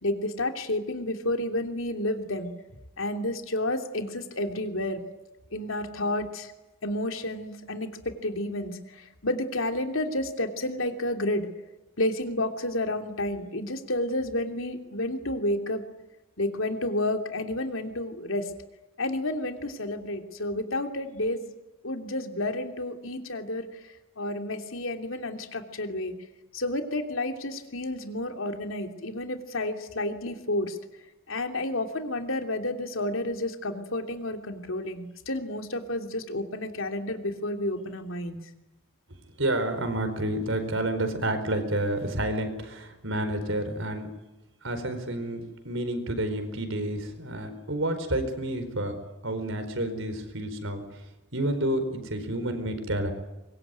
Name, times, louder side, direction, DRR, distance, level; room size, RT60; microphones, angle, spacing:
voice 1, 0.0-2.5 3.0-5.0 5.5-6.5 6.8-11.5 12.0-15.8 16.4-18.4 19.0-21.5 21.8-23.7 24.2-26.1 26.5-30.8 31.3-38.4, left 1 dB, 70° left, 5 dB, 3.1 m, -30 dB
voice 2, 39.4-44.1 44.6-48.9 49.2-50.8 51.3-53.1, right 1 dB, 65° right, 8 dB, 4.7 m, -29 dB
25.0 x 22.5 x 9.5 m, 1.0 s
head